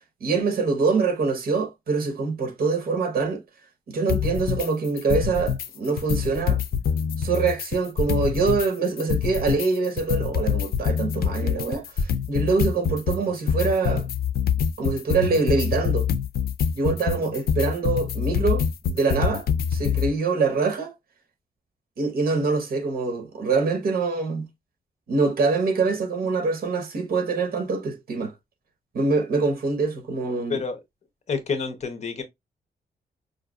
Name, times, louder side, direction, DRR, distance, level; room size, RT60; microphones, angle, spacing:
voice 1, 0.2-3.4 3.9-6.6 7.2-14.1 14.8-16.1 16.8-20.9 22.0-24.5 25.1-28.3 28.9-30.6, right 4 dB, 75° right, 1.0 m, -24 dB
sound 1, 4.1-4.7 5.0-5.7 6.0-8.7 9.0-20.1, left 7 dB, 80° left, 0.4 m, -25 dB
voice 2, 30.5-30.8 31.3-32.2, left 5 dB, 45° left, 0.8 m, -28 dB
4.9 x 2.6 x 2.3 m
wide cardioid pair, 175°, 16 cm